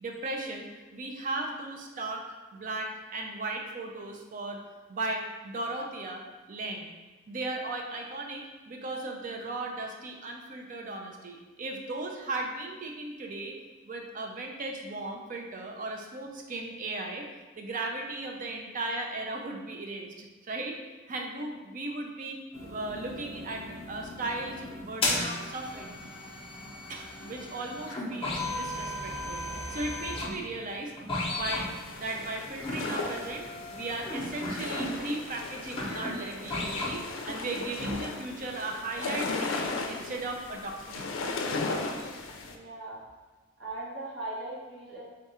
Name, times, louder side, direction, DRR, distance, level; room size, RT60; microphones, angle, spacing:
voice 1, 0.0-4.6 4.9-6.2 6.5-6.9 7.3-13.6 13.8-17.3 17.6-20.8 21.1-23.6 23.9-26.0 26.9-29.4 29.7-30.9 31.2-41.4, right 2 dB, 40° right, 2 dB, 0.5 m, -36 dB
sound 1, 22.5-37.1 37.4-37.9, left 2 dB, 30° left, 0.7 m, -36 dB
sound 2, 31.5-42.6, left 3 dB, 75° left, 0.4 m, -36 dB
voice 2, 42.4-43.0 43.6-45.0, right 2 dB, 70° right, -6 dB, 1.2 m, -39 dB
3.5 x 2.4 x 4.2 m, 1.2 s
head